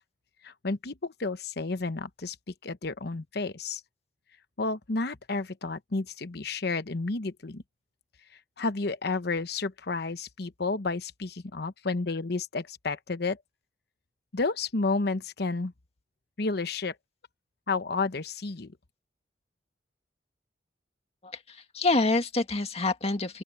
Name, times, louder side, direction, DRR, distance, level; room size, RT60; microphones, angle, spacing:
voice 1, 0.4-2.3 2.6-3.8 4.6-7.6 8.6-13.4 14.3-15.7 16.4-16.9 17.7-18.7, left 3 dB, 65° left, 1.0 m, -31 dB
voice 2, 21.2-23.4, left 2 dB, 35° left, 2.0 m, -27 dB
open air
head